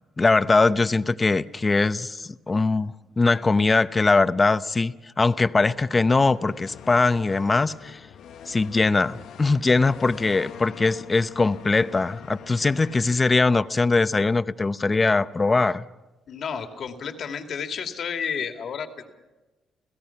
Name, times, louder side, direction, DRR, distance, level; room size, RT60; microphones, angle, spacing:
voice 1, 0.2-8.0 8.5-15.8, left 3 dB, 25° left, 0.7 m, -21 dB
sound 1, 5.1-13.8, left 9 dB, 75° left, 0.9 m, -44 dB
voice 2, 16.3-19.1, left 7 dB, 60° left, 2.4 m, -31 dB
29.5 x 17.0 x 5.8 m
cardioid pair, 90°, 0 cm